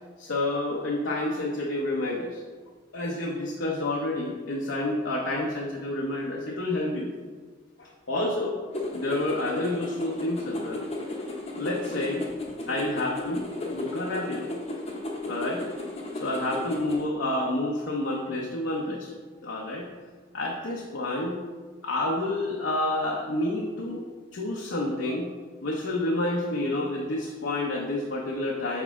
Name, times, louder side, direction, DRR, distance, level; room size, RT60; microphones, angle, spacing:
voice 1, 0.2-2.4 2.9-7.1 7.8-8.6 8.9-10.8 11.5-12.3 12.7-14.5 15.2-15.6 16.1-19.1 19.4-19.9 20.3-21.4 21.8-25.3 25.6-28.8, left 1 dB, 70° left, -1 dB, 0.7 m, -29 dB
sound 1, 8.7-17.0, left 1 dB, 30° left, 0.8 m, -35 dB
7.2 x 4.7 x 3.6 m, 1.5 s
head